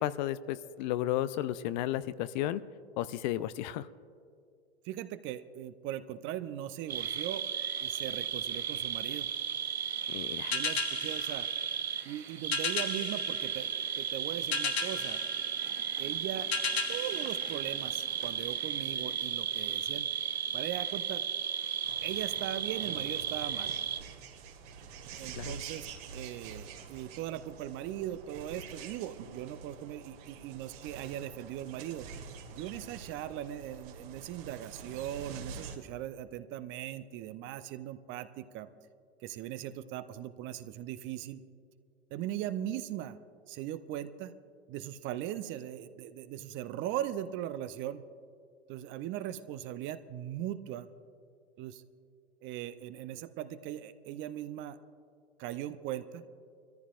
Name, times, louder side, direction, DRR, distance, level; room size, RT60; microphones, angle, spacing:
voice 1, 0.0-2.6 3.0-3.9 10.1-10.6 25.4-25.5, left 13 dB, 45° left, 15 dB, 0.5 m, -33 dB
voice 2, 4.8-7.4 7.8-9.3 10.5-11.5 12.0-15.2 16.0-16.5 16.9-20.1 20.5-21.2 22.0-23.7 25.2-25.9 26.1-32.1 32.5-38.7 39.2-41.4 42.1-43.2 43.5-44.3 44.7-48.0 48.7-50.9 51.6-51.8 52.4-54.8 55.4-56.2, right 12 dB, 40° right, 11 dB, 0.7 m, -39 dB
sound 1, 6.9-24.0, right 8 dB, 80° right, 0.8 m, -35 dB
sound 2, 10.5-18.4, left 6 dB, 85° left, 1.1 m, -37 dB
sound 3, 21.8-35.8, right 5 dB, 55° right, 1.9 m, -47 dB
25.0 x 14.5 x 2.5 m, 2.3 s
figure-of-eight pair, 90°, 31 cm